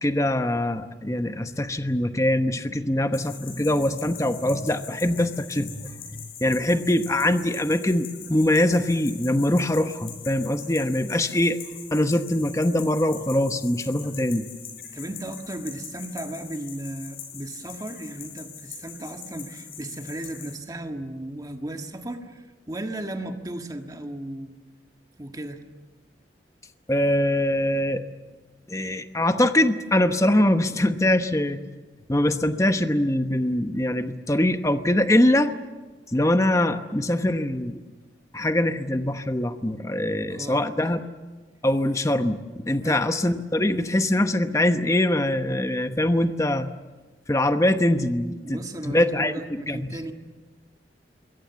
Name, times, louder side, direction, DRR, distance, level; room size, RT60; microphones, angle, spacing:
voice 1, 0.0-11.6 11.9-14.5 26.9-28.0 28.7-31.6 32.1-35.5 36.1-37.8 38.3-41.1 41.6-42.4 42.6-46.7 47.3-48.6 48.8-49.9, left 1 dB, 15° left, 8 dB, 1.0 m, -23 dB
sound 1, 3.1-20.6, left 8 dB, 55° left, 5.1 m, -42 dB
voice 2, 14.9-24.6 25.2-25.6 40.3-41.0 42.8-43.0 48.4-50.1, right 1 dB, 20° right, 4 dB, 1.6 m, -35 dB
26.5 x 22.5 x 7.1 m, 1.3 s
head